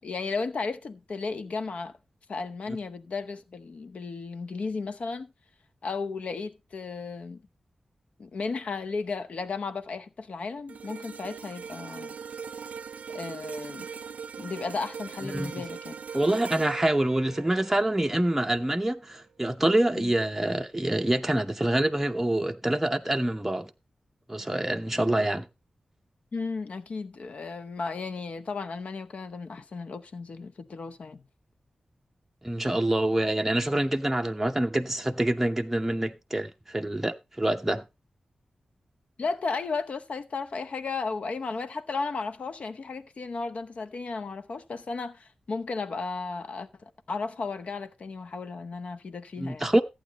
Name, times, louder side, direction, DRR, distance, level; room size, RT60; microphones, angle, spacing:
voice 1, 0.0-2.0 2.3-5.3 5.8-7.4 8.2-12.1 13.1-13.9 14.4-15.9 19.9-20.1 26.3-31.2 39.2-49.7, left 4 dB, 60° left, 0.8 m, -34 dB
sound 1, 10.7-19.0 19.5-19.7, right 6 dB, 80° right, 0.4 m, -41 dB
voice 2, 15.2-15.6 16.1-23.7 24.3-25.5 32.4-37.8 49.4-49.8, right 1 dB, 10° right, 0.7 m, -26 dB
14.0 x 8.8 x 2.9 m
wide cardioid pair, 150°, 3 cm